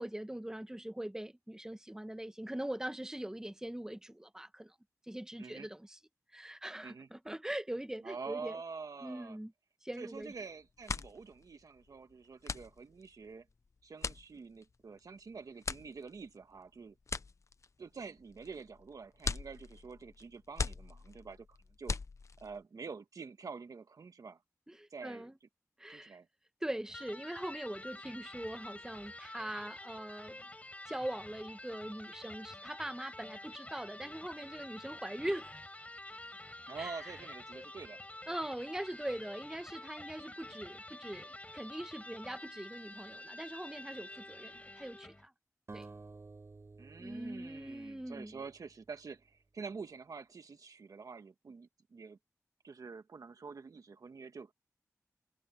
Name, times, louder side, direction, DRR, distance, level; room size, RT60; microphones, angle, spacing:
voice 1, 0.0-4.7 5.1-6.0 6.3-8.6 9.0-9.5 9.8-10.3 24.7-25.3 25.8-26.2 26.6-30.4 30.9-35.6 36.8-37.2 38.3-45.3 45.7-45.9 47.0-48.4, right 1 dB, 10° right, 1.2 m, -42 dB
voice 2, 8.0-9.4 10.0-13.4 13.8-16.9 17.8-22.0 22.4-24.4 24.9-25.3 25.9-26.3 28.1-28.2 36.7-38.0 44.5-44.6 46.8-52.2 52.6-54.5, right 5 dB, 80° right, 1.8 m, -47 dB
sound 1, 10.1-10.4 10.7-22.6, left 4 dB, 55° left, 0.8 m, -41 dB
Electric guitar, 26.9-45.3, left 1 dB, 25° left, 5.4 m, -49 dB
sound 2, 45.7-48.9, right 3 dB, 50° right, 5.5 m, -53 dB
wide cardioid pair, 60°, 6 cm